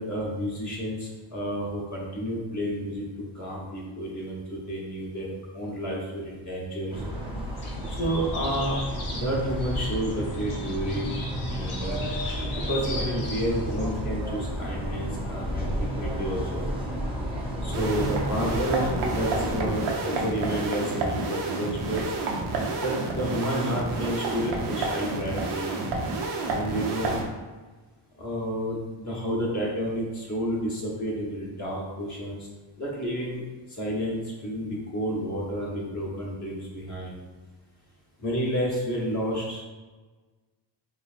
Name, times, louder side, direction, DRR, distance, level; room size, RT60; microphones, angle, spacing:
voice 1, 0.0-3.0 3.3-5.3 5.5-7.0 7.9-8.8 9.1-11.1 11.5-12.0 12.5-16.7 17.6-22.1 22.8-25.7 26.5-27.1 28.2-32.5 32.8-33.4 33.7-37.2 38.2-39.6, equal, 35° left, -4 dB, 0.8 m, -30 dB
sound 1, 6.9-19.7, equal, 10° right, 0.4 m, -32 dB
sound 2, 7.6-14.0, left 2 dB, 90° left, 0.9 m, -39 dB
sound 3, 17.7-27.2, right 3 dB, 85° right, 0.8 m, -30 dB
3.9 x 3.1 x 2.4 m, 1.3 s
wide cardioid pair, 160°, 48 cm